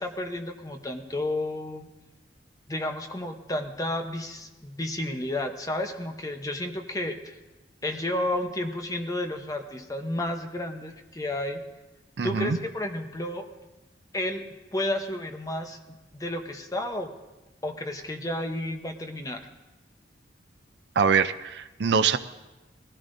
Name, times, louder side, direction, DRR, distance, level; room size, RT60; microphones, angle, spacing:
voice 1, 0.0-1.9 2.7-7.4 7.8-11.6 12.2-13.5 14.1-14.4 14.7-15.8 16.1-17.1 17.6-19.4, left 1 dB, 20° left, 5 dB, 0.9 m, -31 dB
voice 2, 12.2-12.6 21.0-22.2, right 6 dB, 65° right, 9 dB, 0.5 m, -23 dB
20.0 x 15.0 x 2.7 m, 1.1 s
head